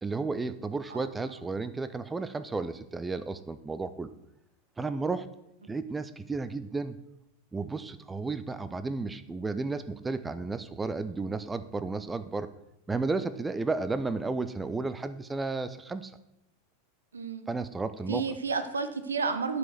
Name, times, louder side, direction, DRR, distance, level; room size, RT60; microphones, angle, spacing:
voice 1, 0.0-4.1 4.8-5.3 5.7-7.0 7.5-12.5 12.9-16.1 17.5-18.2, right 3 dB, 15° right, 13 dB, 0.6 m, -33 dB
voice 2, 17.1-17.5 18.1-19.6, right 5 dB, 80° right, 10 dB, 0.9 m, -31 dB
11.0 x 5.5 x 6.5 m, 0.84 s
figure-of-eight pair, 90°, 0 cm